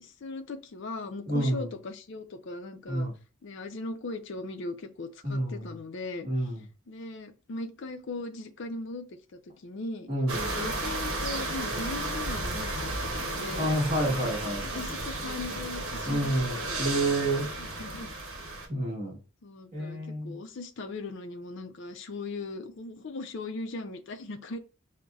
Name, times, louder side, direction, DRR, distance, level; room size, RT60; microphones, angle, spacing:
voice 1, 0.0-3.1 3.4-6.3 6.9-9.1 9.6-10.1 10.4-13.7 14.1-16.9 17.6-18.1 18.9-19.0 19.4-24.6, left 3 dB, 55° left, 0.4 m, -39 dB
voice 2, 1.3-1.7 2.9-3.1 5.2-5.7 6.2-6.6 10.1-10.5 11.7-11.9 13.6-14.7 16.0-17.5 18.7-19.2 19.7-20.3, right 1 dB, 35° right, 1.3 m, -29 dB
sound 1, 10.3-18.7, right 2 dB, 75° right, 0.9 m, -33 dB
5.3 x 2.1 x 2.3 m
head